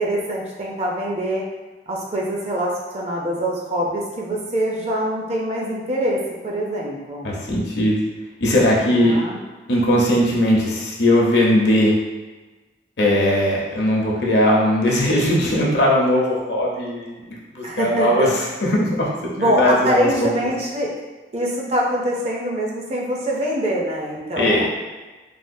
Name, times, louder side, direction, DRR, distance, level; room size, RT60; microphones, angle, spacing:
voice 1, 0.0-1.4 1.9-7.4 8.9-9.4 17.6-18.3 19.4-20.9 21.3-24.7, equal, 35° right, -2 dB, 0.5 m, -24 dB
voice 2, 7.2-8.0 8.4-9.2 9.7-11.9 13.0-17.2 17.5-18.3 18.6-19.1 19.4-20.3 24.4-24.7, left 1 dB, 65° left, -3 dB, 0.7 m, -19 dB
3.4 x 2.3 x 2.6 m, 1.2 s
head